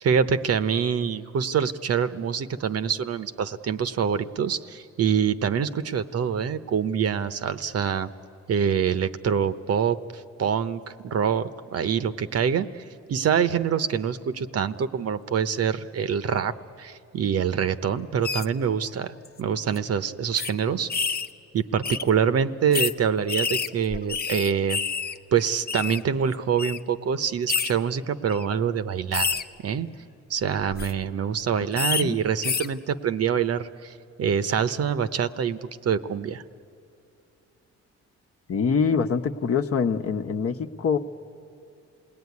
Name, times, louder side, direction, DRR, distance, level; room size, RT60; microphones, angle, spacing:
voice 1, 0.0-8.1 8.5-20.9 21.5-24.8 25.3-29.9 30.3-33.9 34.2-36.4, right 7 dB, 55° right, 12 dB, 0.9 m, -25 dB
sound 1, 18.2-18.4 19.2-19.4 19.7-19.8 20.4-20.5 20.9-21.3 21.8-22.0 22.7-22.9 23.3-25.1 25.4-26.0 26.6-26.8 27.5-27.7 28.3-28.4 29.1-29.4 30.6-30.9 31.8-32.0 32.4-32.7, left 5 dB, 30° left, 0.8 m, -27 dB
voice 2, 38.5-41.0, left 6 dB, 50° left, 5 dB, 1.1 m, -24 dB
28.0 x 19.0 x 9.6 m, 2.5 s
cardioid pair, 90°, 30 cm